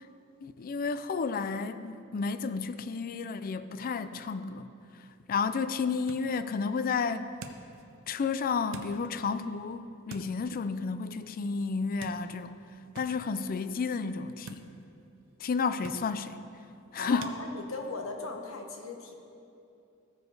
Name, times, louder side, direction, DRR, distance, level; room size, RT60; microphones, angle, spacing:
voice 1, 0.4-4.7 5.3-7.3 8.1-12.6 13.0-14.7 15.4-16.4 16.9-17.3, left 5 dB, 45° left, 12 dB, 0.4 m, -32 dB
sound 1, 4.9-17.4, right 3 dB, 65° right, 0.6 m, -51 dB
voice 2, 17.0-19.1, left 3 dB, 70° left, 3 dB, 1.0 m, -38 dB
15.0 x 5.1 x 4.7 m, 2.7 s
head